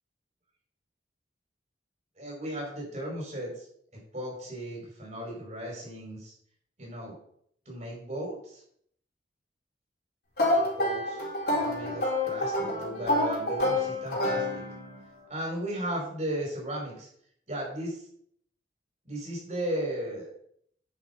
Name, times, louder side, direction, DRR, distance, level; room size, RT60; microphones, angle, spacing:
voice 1, 2.2-3.7 4.1-6.3 6.8-7.2 7.6-8.6 10.8-11.3 11.5-14.6 15.3-17.1 17.5-18.1 19.0-20.3, right 1 dB, 40° right, -2 dB, 4.9 m, -35 dB
sound 1, 10.4-15.0, left 1 dB, 55° left, 4.1 m, -28 dB
10.0 x 6.2 x 5.6 m, 0.67 s
head